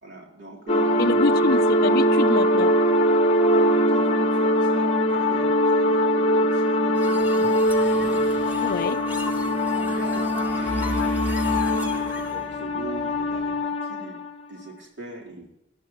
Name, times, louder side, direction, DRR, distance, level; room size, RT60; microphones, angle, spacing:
voice 1, 0.0-1.7 3.4-8.2 9.1-11.1 11.5-14.2 14.5-15.5, right 2 dB, 65° right, 3.9 m, -40 dB
sound 1, 0.7-14.3, equal, 35° left, 1.0 m, -22 dB
voice 2, 1.0-2.7 8.6-9.0, left 4 dB, 55° left, 0.4 m, -26 dB
sound 2, 6.9-12.5, left 1 dB, 10° right, 1.5 m, -40 dB
Mechanisms, 7.6-13.5, left 1 dB, 50° right, 6.1 m, -37 dB
19.0 x 11.5 x 3.0 m
head